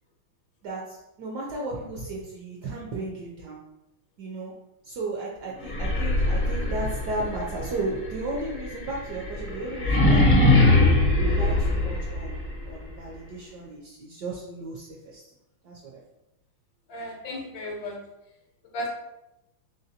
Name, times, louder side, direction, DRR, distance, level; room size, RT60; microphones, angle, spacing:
voice 1, 0.6-3.6 4.2-4.6 4.8-10.7 11.2-15.3 15.6-16.0, right 2 dB, 75° right, -2 dB, 1.0 m, -34 dB
sound 1, 5.6-12.5, left 2 dB, 55° left, 0.5 m, -22 dB
voice 2, 16.9-18.0 18.7-18.9, left 1 dB, 70° left, 1 dB, 1.2 m, -34 dB
3.8 x 3.7 x 2.7 m, 0.91 s
omnidirectional pair, 2.3 m